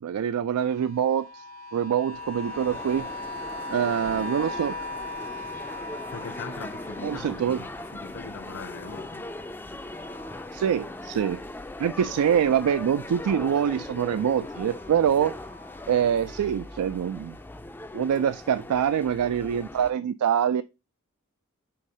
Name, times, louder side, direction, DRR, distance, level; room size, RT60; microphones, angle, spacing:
voice 1, 0.0-1.4 1.7-3.1 3.7-4.7 7.0-7.6 10.5-11.4 11.8-15.4 15.9-17.4 17.9-20.6, right 8 dB, 85° right, 0.3 m, -25 dB
sound 1, 0.6-11.6 11.9-16.5 17.2-17.3, left 2 dB, 65° right, 0.7 m, -41 dB
sound 2, 2.1-19.9, left 2 dB, 10° left, 0.3 m, -40 dB
voice 2, 6.1-9.2, left 4 dB, 60° left, 0.7 m, -40 dB
5.8 x 3.6 x 5.1 m
head